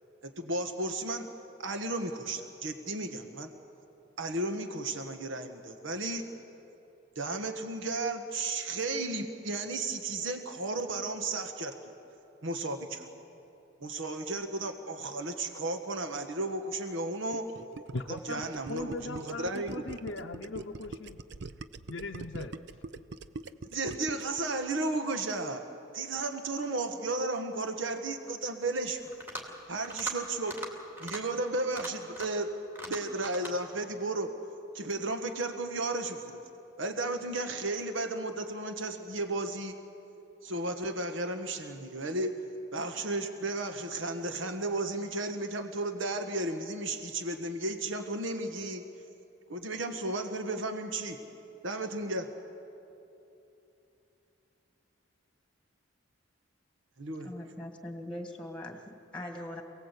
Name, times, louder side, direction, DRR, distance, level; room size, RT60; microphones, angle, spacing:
voice 1, 0.2-1.3 1.6-3.5 4.2-6.3 7.1-11.7 12.4-13.1 13.8-17.5 18.1-19.7 23.7-25.6 25.9-29.0 29.7-30.6 31.0-32.5 32.9-34.3 34.7-36.4 36.8-39.8 40.4-42.3 42.7-48.8 49.5-51.2 51.6-52.3 57.0-57.3, right 2 dB, 75° right, 6 dB, 1.4 m, -34 dB
Gurgling, 17.3-24.4, right 3 dB, 55° right, 0.6 m, -43 dB
voice 2, 17.9-18.4 18.7-21.2 21.9-22.6, left 3 dB, 65° left, 3 dB, 0.7 m, -39 dB
sound 1, 29.1-29.5 29.8-30.2 30.4-30.7 31.0-31.2 31.6-32.4 32.8-33.5, right 1 dB, 10° right, 2.6 m, -40 dB
voice 3, 57.2-59.6, left 1 dB, 5° left, 3 dB, 2.0 m, -41 dB
27.0 x 18.5 x 8.2 m, 2.9 s
head